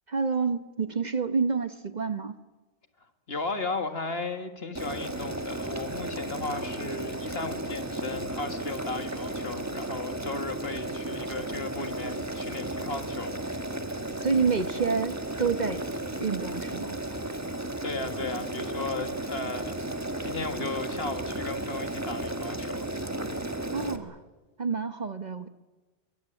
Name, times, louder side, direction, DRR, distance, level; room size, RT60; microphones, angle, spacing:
voice 1, 0.1-2.4 14.2-15.8 16.2-17.0 23.7-24.2 24.6-25.5, right 5 dB, 40° right, 10 dB, 1.1 m, -28 dB
voice 2, 3.3-13.4 17.8-22.9, left 3 dB, 60° left, 7 dB, 2.1 m, -35 dB
Boiling, 4.7-24.0, right 1 dB, 15° right, 1.5 m, -34 dB
24.5 x 23.0 x 8.9 m, 1.2 s
omnidirectional pair, 1.2 m